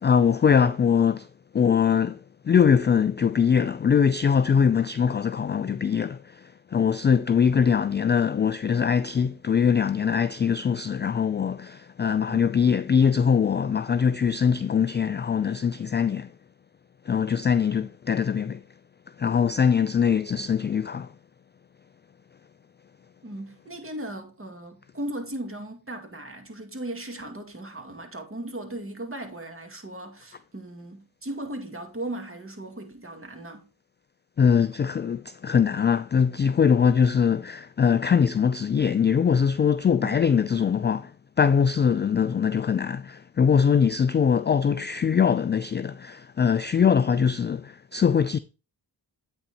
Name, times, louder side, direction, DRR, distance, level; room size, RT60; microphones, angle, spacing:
voice 1, 0.0-1.3 1.5-16.3 17.1-18.6 19.2-21.1 34.4-41.1 41.4-48.4, left 7 dB, 25° left, 0.3 m, -22 dB
voice 2, 23.2-33.6 40.0-40.2, right 1 dB, 30° right, 2.1 m, -37 dB
8.8 x 4.1 x 4.3 m
supercardioid pair, 40°, 47 cm